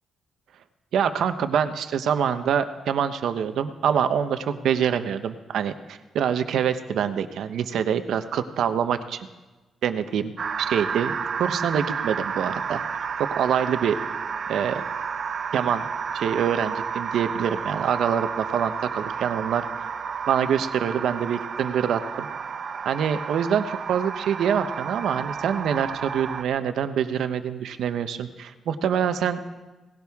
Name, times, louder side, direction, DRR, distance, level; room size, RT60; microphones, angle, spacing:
voice 1, 0.9-9.3 9.8-10.3 10.6-11.1 11.4-12.8 13.4-14.0 14.5-14.8 15.5-15.8 16.1-19.7 20.3-22.3 22.8-29.5, right 8 dB, 75° right, 10 dB, 0.8 m, -25 dB
sound 1, 10.4-26.4, right 6 dB, 40° right, 0.4 m, -31 dB
18.5 x 16.5 x 3.6 m, 1.2 s
wide cardioid pair, 180°, 0 cm